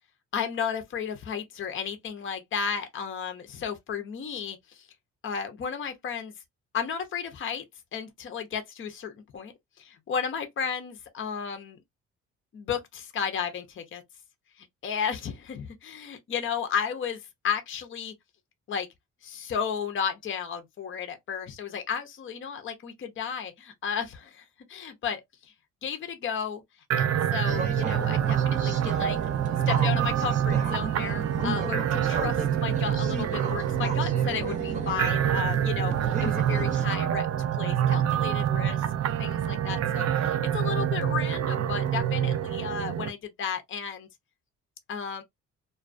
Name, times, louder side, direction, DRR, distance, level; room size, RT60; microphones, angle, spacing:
voice 1, 0.3-4.9 5.2-6.3 6.7-7.6 7.9-9.5 9.8-11.8 12.5-14.0 14.6-18.1 18.7-18.9 19.2-25.5 25.8-26.6 27.0-29.2 29.7-37.3 37.6-38.8 39.2-44.1 44.9-45.2, left 7 dB, 40° left, 0.6 m, -33 dB
sound 1, 26.9-43.1, right 10 dB, 55° right, 0.4 m, -26 dB
sound 2, 27.5-36.9, right 4 dB, 25° right, 0.7 m, -35 dB
2.2 x 2.2 x 2.5 m
cardioid pair, 90°, 30 cm